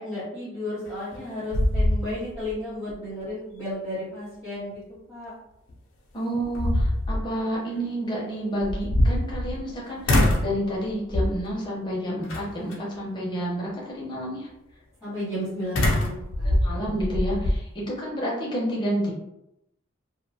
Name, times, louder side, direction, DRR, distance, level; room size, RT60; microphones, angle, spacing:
voice 1, 0.0-4.8 5.1-5.3 15.0-16.5, left 1 dB, 5° right, -15 dB, 1.0 m, -33 dB
sound 1, 0.9-1.2 1.5-2.5 2.9-3.0 5.7-5.8 6.3-7.3 8.6-9.7 10.0-10.6 11.1-11.5 12.3-12.7 15.7-17.6, left 1 dB, 80° left, 0.4 m, -23 dB
voice 2, 6.1-14.5 16.4-19.1, equal, 20° left, -4 dB, 0.6 m, -30 dB
2.4 x 2.2 x 2.7 m, 0.86 s
head